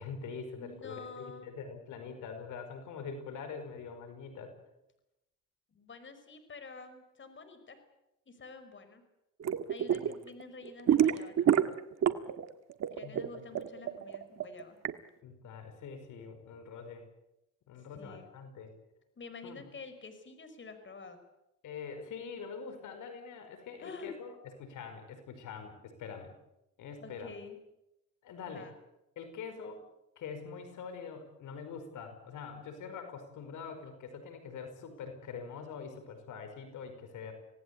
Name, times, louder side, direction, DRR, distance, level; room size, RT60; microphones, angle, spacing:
voice 1, 0.0-4.5 13.0-13.5 15.2-17.1 17.7-18.7 19.4-19.7 21.6-26.3 26.8-27.4 28.2-28.7 29.2-29.8 30.2-37.3, left 5 dB, 80° left, 7 dB, 5.3 m, -44 dB
voice 2, 0.5-1.5 5.7-7.8 8.3-9.0 9.7-11.7 12.9-14.8 17.9-18.3 19.2-21.2 23.8-24.1 27.0-27.6 28.5-28.7, left 4 dB, 40° left, 9 dB, 5.3 m, -48 dB
sound 1, 9.4-10.1 10.4-12.4 12.7-14.9, right 9 dB, 60° right, 1.7 m, -27 dB
26.5 x 18.5 x 8.5 m, 0.89 s
cardioid pair, 90°, 30 cm